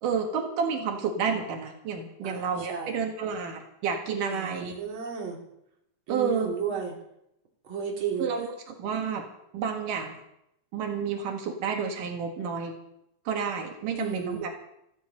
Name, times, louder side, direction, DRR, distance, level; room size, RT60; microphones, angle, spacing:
voice 1, 0.0-4.7 6.1-6.5 8.2-9.3 9.5-10.2 10.7-12.8 13.3-14.5, right 6 dB, 85° right, 2 dB, 3.3 m, -30 dB
voice 2, 2.2-3.0 4.3-5.4 6.1-7.0 7.6-8.3 13.9-14.5, right 6 dB, 40° right, -1 dB, 3.8 m, -33 dB
15.5 x 14.5 x 5.3 m, 0.79 s
omnidirectional pair, 3.7 m